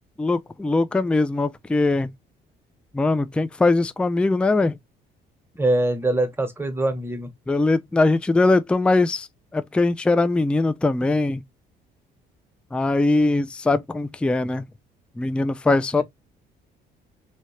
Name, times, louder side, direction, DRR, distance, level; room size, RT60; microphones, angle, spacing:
voice 1, 0.2-2.1 2.9-4.8 7.5-9.3 9.5-11.4 12.7-14.6 15.2-16.0, left 2 dB, 5° left, 0.3 m, -21 dB
voice 2, 5.6-7.3, right 2 dB, 10° right, 1.1 m, -23 dB
3.1 x 2.8 x 2.9 m
supercardioid pair, 70°, 21 cm